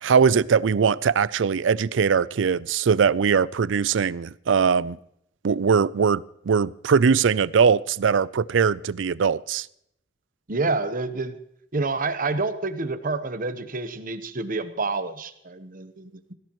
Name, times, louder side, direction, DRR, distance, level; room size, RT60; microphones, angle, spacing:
voice 1, 0.0-5.0 5.4-9.7, right 6 dB, 75° right, 0.4 m, -21 dB
voice 2, 10.5-11.4 11.7-16.3, right 3 dB, 45° right, 1.1 m, -28 dB
21.0 x 16.5 x 3.1 m
head